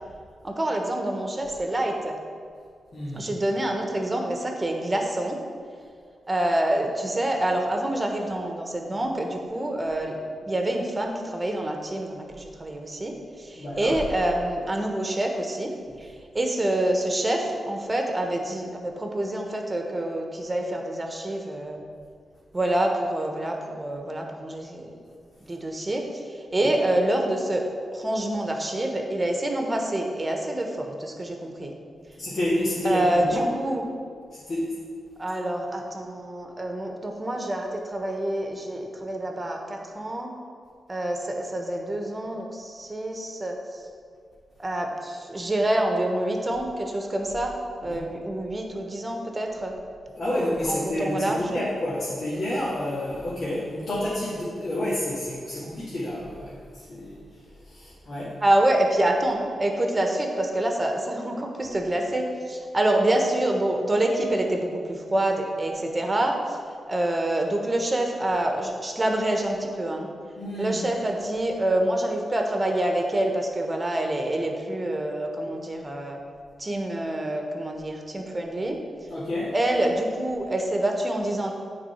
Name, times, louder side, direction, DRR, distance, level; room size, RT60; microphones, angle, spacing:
voice 1, 0.4-2.2 3.1-5.4 6.3-21.8 22.5-25.0 25.5-27.6 27.9-31.7 32.8-33.8 35.2-40.3 40.9-43.8 44.6-47.6 47.8-49.7 50.7-51.6 58.4-66.6 66.9-70.1 70.6-76.2 76.6-78.8 79.5-81.5, right 1 dB, 25° right, 2 dB, 1.3 m, -27 dB
voice 2, 2.9-3.3 13.5-14.0 26.5-26.7 32.2-33.5 34.3-34.8 47.9-48.1 50.1-58.4 70.4-70.8 79.1-79.5, left 1 dB, 60° left, -10 dB, 2.1 m, -29 dB
9.1 x 4.1 x 5.7 m, 2.2 s
cardioid pair, 55°, 0 cm